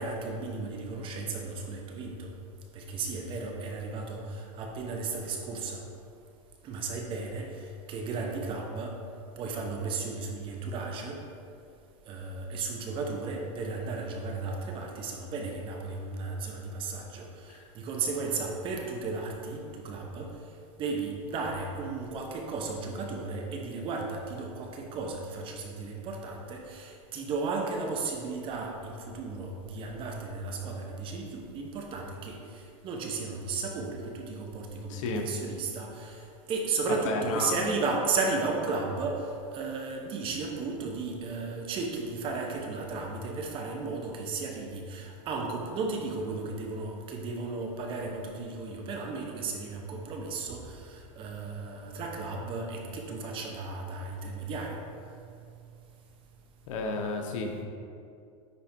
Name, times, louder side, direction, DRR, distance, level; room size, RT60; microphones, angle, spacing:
voice 1, 0.0-2.3 2.7-5.8 6.6-7.5 7.9-8.9 9.4-11.2 12.1-20.3 20.8-36.2 36.5-54.8, right 3 dB, 30° right, 1 dB, 0.9 m, -34 dB
voice 2, 34.9-35.3 36.9-37.6 56.7-57.7, left 3 dB, 70° left, 2 dB, 1.1 m, -32 dB
9.8 x 3.6 x 4.5 m, 2.5 s
supercardioid pair, 150°, 17 cm